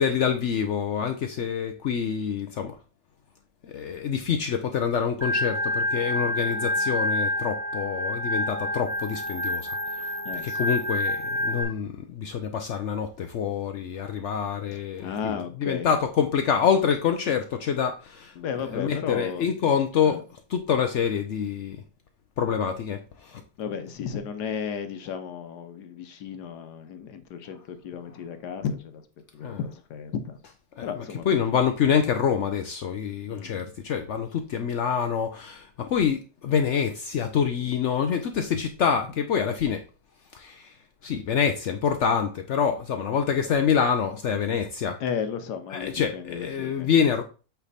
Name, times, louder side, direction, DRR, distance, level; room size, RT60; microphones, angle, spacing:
voice 1, 0.0-2.8 3.6-9.8 10.4-15.1 15.6-18.3 18.7-20.2 20.5-21.8 22.4-23.4 29.4-29.6 31.3-39.8 40.3-40.7 41.0-45.0 45.7-47.2, left 7 dB, 85° left, 0.6 m, -26 dB
Organ, 5.2-11.6, left 1 dB, 10° right, 1.3 m, -28 dB
voice 2, 10.2-10.7 14.7-16.0 18.3-19.5 20.0-20.2 23.6-29.0 29.3-30.4 30.8-31.4 33.3-33.5 45.0-47.1, left 7 dB, 70° left, 1.3 m, -34 dB
8.3 x 3.4 x 4.0 m
omnidirectional pair, 1.9 m